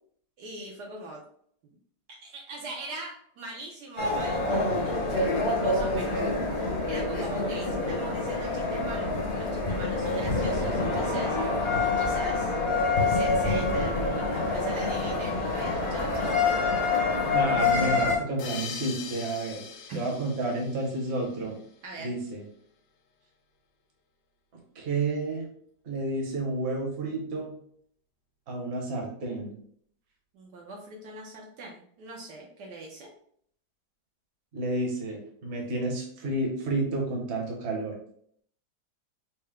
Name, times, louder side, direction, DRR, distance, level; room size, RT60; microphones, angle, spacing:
voice 1, 0.4-1.2 2.1-11.4 12.0-12.6 13.0-16.5 19.9-20.0 21.8-22.1 30.3-33.1, right 2 dB, 70° right, -1 dB, 1.2 m, -41 dB
sound 1, 4.0-18.2, left 3 dB, 45° left, 1.0 m, -26 dB
voice 2, 17.2-19.6 19.9-21.5 22.0-22.4 24.7-25.5 25.8-27.5 28.5-29.5 34.5-37.9, right 2 dB, 45° right, -1 dB, 1.0 m, -30 dB
sound 2, 18.4-21.7, left 7 dB, 75° left, 1.1 m, -41 dB
4.4 x 2.1 x 3.5 m, 0.63 s
omnidirectional pair, 2.0 m